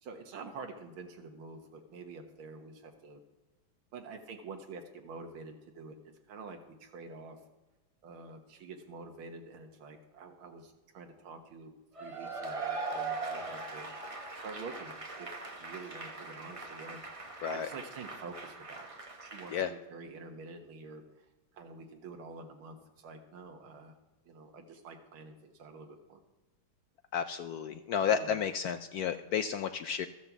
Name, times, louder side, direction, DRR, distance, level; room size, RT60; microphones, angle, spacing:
voice 1, 0.0-3.2 3.9-7.4 8.0-11.7 12.0-13.9 14.4-15.3 15.6-17.0 17.5-21.3 21.5-24.0 24.3-26.2 28.1-28.4, right 4 dB, 85° right, 3 dB, 2.1 m, -47 dB
Cheering / Applause / Crowd, 12.0-19.6, right 3 dB, 25° right, 0.8 m, -41 dB
voice 2, 27.1-30.1, left 8 dB, 80° left, 9 dB, 0.8 m, -32 dB
13.5 x 7.6 x 7.2 m, 1.2 s
omnidirectional pair, 2.2 m